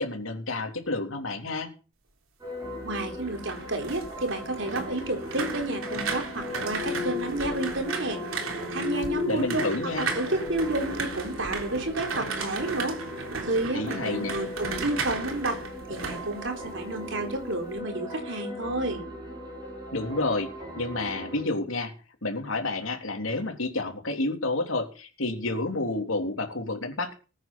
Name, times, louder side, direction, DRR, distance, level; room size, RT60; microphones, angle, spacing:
voice 1, 0.0-1.7 9.3-10.1 13.7-14.3 19.9-20.5 20.8-21.9 22.2-27.1, left 2 dB, 80° left, 4 dB, 3.3 m, -29 dB
sound 1, 2.4-21.4, left 2 dB, 20° right, 6.6 m, -37 dB
voice 2, 2.8-8.2 8.7-9.7 10.0-13.0 13.4-15.6 15.9-19.0, right 2 dB, 65° right, 4 dB, 3.8 m, -30 dB
sound 2, 3.1-17.1 17.4-17.8, right 4 dB, 80° right, 3.6 m, -35 dB
20.0 x 9.1 x 5.5 m, 0.36 s
head